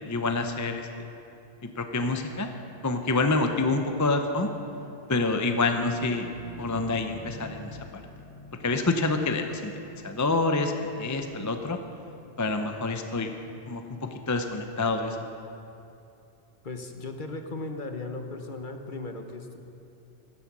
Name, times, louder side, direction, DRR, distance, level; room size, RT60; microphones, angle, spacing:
voice 1, 0.0-0.9 1.8-2.5 2.8-4.5 5.1-6.3 6.6-8.0 8.6-9.7 10.0-11.8 12.4-13.3 13.7-15.2, left 3 dB, 20° left, 6 dB, 0.6 m, -27 dB
Car passing by / Truck, 2.4-16.0, left 1 dB, 70° left, 3.0 m, -49 dB
voice 2, 16.6-19.6, left 2 dB, 50° left, 5 dB, 1.2 m, -37 dB
16.0 x 12.0 x 6.1 m, 2.7 s
omnidirectional pair, 1.1 m